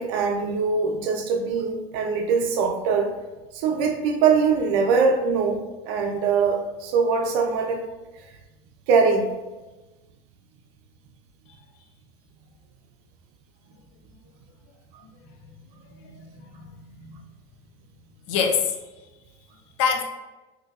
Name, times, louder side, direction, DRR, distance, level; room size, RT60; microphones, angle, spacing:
voice 1, 0.0-3.1 3.5-7.8 8.9-9.3, right 5 dB, 70° right, 4 dB, 0.6 m, -22 dB
voice 2, 15.0-17.2 18.3-18.8 19.8-20.0, left 6 dB, 70° left, 4 dB, 0.6 m, -28 dB
3.8 x 2.8 x 2.5 m, 1.1 s
supercardioid pair, 125°, 15 cm